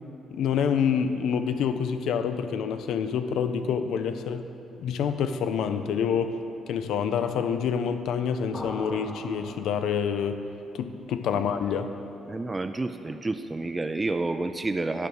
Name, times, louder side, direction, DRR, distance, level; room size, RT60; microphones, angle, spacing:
voice 1, 0.3-4.5 4.8-6.4 6.7-10.5 10.7-12.0, left 7 dB, 80° left, 9 dB, 0.4 m, -27 dB
sound 1, 8.5-10.3, left 1 dB, 30° left, 1.2 m, -40 dB
voice 2, 12.3-15.1, right 2 dB, 20° right, 8 dB, 0.3 m, -29 dB
9.7 x 5.0 x 6.2 m, 2.8 s
cardioid pair, 90°, 0 cm